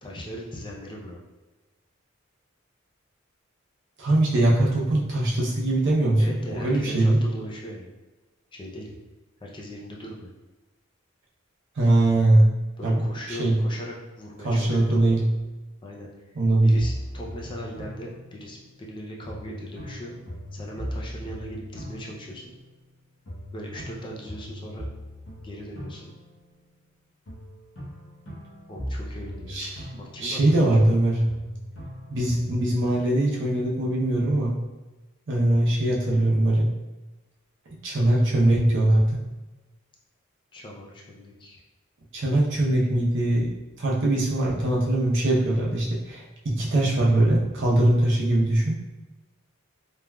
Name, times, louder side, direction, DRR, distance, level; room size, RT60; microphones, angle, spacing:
voice 1, 0.0-1.2 6.2-7.9 8.5-8.9 9.4-10.3 12.8-15.2 15.8-16.1 16.6-20.2 20.5-22.4 23.5-24.9 25.4-26.1 28.7-29.6 30.0-30.7 40.5-41.6, equal, 25° left, -2 dB, 0.4 m, -39 dB
voice 2, 4.0-7.2 11.8-12.5 12.8-13.0 13.3-13.6 14.4-15.2 16.4-16.7 29.5-29.9 30.2-31.2 32.1-34.6 35.3-36.7 37.8-39.2 42.1-43.5 43.8-48.8, right 1 dB, 60° right, -4 dB, 0.7 m, -21 dB
sound 1, 16.8-18.9 19.3-23.0 23.3-26.9 27.3-31.0 31.3-32.8, equal, 65° left, 0.9 m, -39 dB
3.3 x 2.4 x 2.2 m, 1.1 s
head